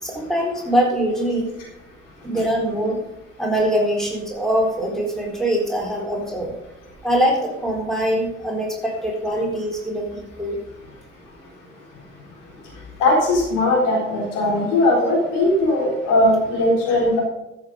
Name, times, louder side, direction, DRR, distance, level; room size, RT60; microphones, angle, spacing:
voice 1, 0.0-1.5 2.2-3.0 3.4-6.5 7.0-10.6, right 1 dB, ahead, -1 dB, 4.1 m, -23 dB
voice 2, 13.0-17.2, left 1 dB, 65° left, -2 dB, 4.0 m, -19 dB
13.5 x 7.1 x 5.3 m, 0.94 s
figure-of-eight pair, 50°, 36 cm